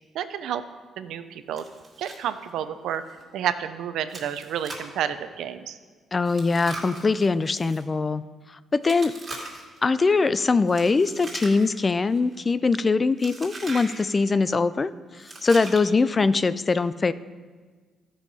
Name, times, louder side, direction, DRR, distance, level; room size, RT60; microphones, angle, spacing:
voice 1, 0.1-0.6 1.0-1.7 2.0-3.0 3.3-5.8, right 9 dB, 80° right, 11 dB, 0.5 m, -30 dB
Chewing mastication, 1.6-2.2 2.5-2.6 3.1-3.2 4.1-5.0 6.2-7.8 8.8-9.8 10.7-11.8 12.1-12.5 13.2-14.0 15.2-16.0, right 2 dB, 30° right, 2.6 m, -40 dB
voice 2, 6.1-9.1 9.8-17.1, left 4 dB, 30° left, 15 dB, 0.3 m, -22 dB
13.0 x 5.6 x 5.4 m, 1.5 s
cardioid pair, 90°, 0 cm